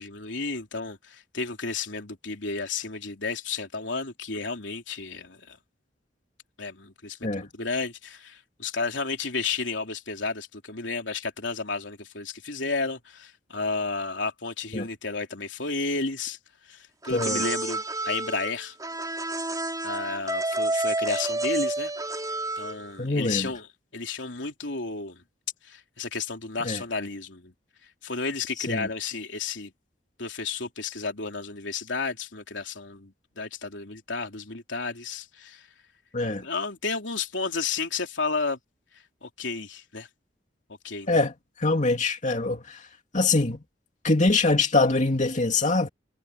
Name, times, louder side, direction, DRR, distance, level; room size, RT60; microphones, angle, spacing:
voice 1, 0.0-5.6 6.6-16.4 16.6-18.7 19.8-21.9 22.6-23.7 23.9-25.2 25.6-27.5 28.0-29.7 30.2-35.7 36.4-38.6 39.2-40.1 40.8-41.2, left 4 dB, 85° left, 3.4 m, -32 dB
sound 1, 17.0-22.9, right 2 dB, 20° right, 5.2 m, -29 dB
voice 2, 17.1-17.4 23.0-23.5 26.6-26.8 28.6-28.9 36.1-36.5 41.1-42.9 43.1-43.6 44.0-45.9, left 3 dB, 45° left, 2.5 m, -24 dB
head